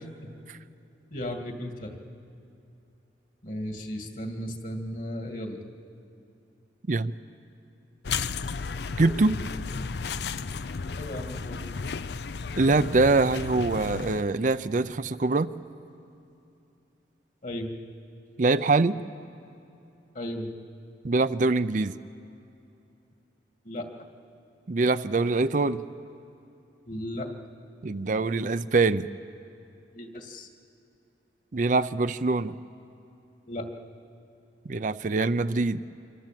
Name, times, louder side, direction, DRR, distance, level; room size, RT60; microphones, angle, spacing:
voice 1, 1.1-2.0 3.4-5.6 9.0-9.1 11.0-11.6 17.4-17.7 20.1-20.5 23.6-23.9 26.9-27.3 29.9-30.5 33.5-33.7, left 1 dB, 50° left, 4 dB, 2.3 m, -35 dB
sound 1, 8.0-14.2, left 5 dB, 70° left, 0.6 m, -33 dB
voice 2, 9.0-9.4 12.6-15.5 18.4-19.0 21.0-21.9 24.7-25.8 27.8-29.1 31.5-32.5 34.7-35.8, right 3 dB, 45° right, 12 dB, 0.5 m, -24 dB
26.5 x 25.0 x 7.6 m, 2.8 s
head